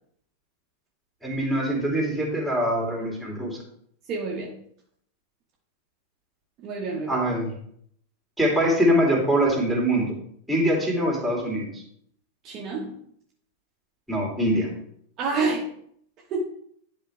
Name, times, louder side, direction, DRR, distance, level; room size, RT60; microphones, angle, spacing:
voice 1, 1.2-3.6 7.1-7.5 8.4-10.1 10.5-11.8 14.1-14.7, equal, ahead, -2 dB, 2.6 m, -23 dB
voice 2, 4.1-4.5 6.6-7.2 12.4-12.9 15.2-15.6 16.3-16.4, right 4 dB, 35° right, -2 dB, 1.2 m, -28 dB
10.5 x 4.3 x 3.4 m, 0.67 s
figure-of-eight pair, 90°, 0 cm